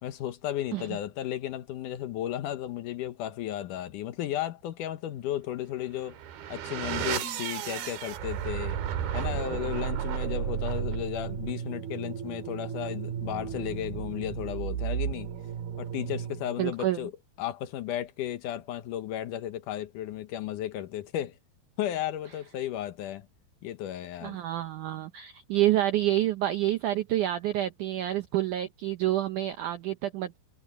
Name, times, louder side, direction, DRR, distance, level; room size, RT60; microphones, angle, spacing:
voice 1, 0.0-6.2 6.5-8.8 9.1-15.3 15.8-17.1 17.4-21.4 21.8-23.3 23.6-24.4, left 12 dB, 70° left, 2.0 m, -34 dB
sound 1, 5.9-16.7, right 9 dB, 70° right, 3.5 m, -33 dB
voice 2, 16.6-17.1 24.2-30.4, right 13 dB, 85° right, 1.8 m, -28 dB
omnidirectional pair, 4.8 m